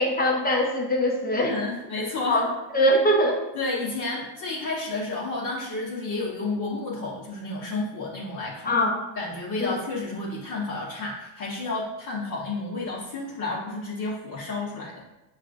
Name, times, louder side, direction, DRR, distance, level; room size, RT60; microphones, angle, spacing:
voice 1, 0.0-1.5 2.3-2.5 2.7-3.4 8.6-9.0 9.6-9.8, equal, 20° left, 0 dB, 0.8 m, -22 dB
voice 2, 1.4-2.4 3.5-8.7 9.2-15.0, left 3 dB, 40° left, -7 dB, 1.1 m, -31 dB
6.2 x 2.5 x 2.6 m, 0.96 s
supercardioid pair, 95°, 50 cm